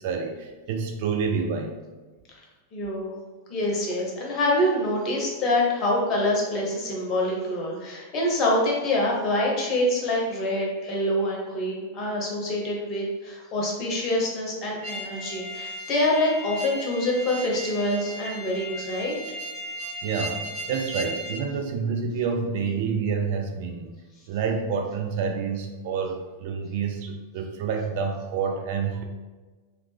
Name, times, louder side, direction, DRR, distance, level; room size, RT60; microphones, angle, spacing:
voice 1, 0.0-1.7 20.0-23.9 24.3-29.0, right 5 dB, 50° right, 3 dB, 0.4 m, -28 dB
voice 2, 2.7-3.2 3.5-19.2, left 1 dB, 35° left, -2 dB, 0.9 m, -26 dB
sound 1, 14.8-21.4, equal, 25° right, 0.9 m, -36 dB
3.1 x 2.4 x 3.3 m, 1.3 s
figure-of-eight pair, 90°, 0 cm